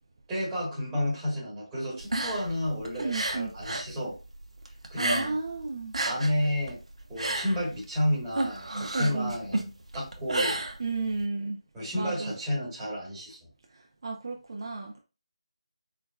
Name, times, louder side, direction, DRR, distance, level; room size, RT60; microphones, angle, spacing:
voice 1, 0.3-4.2 4.9-5.4 6.0-6.8 7.1-10.6 11.7-13.4, left 1 dB, 10° right, 1.4 m, -31 dB
sound 1, 2.0-3.9 4.2-5.5 5.8-11.2, right 2 dB, 70° right, 0.9 m, -31 dB
voice 2, 3.0-3.5 5.0-5.9 8.9-9.3 10.8-11.6 12.0-12.3 13.7-15.0, right 3 dB, 40° right, 0.5 m, -33 dB
4.6 x 3.4 x 2.3 m
figure-of-eight pair, 165°, 4 cm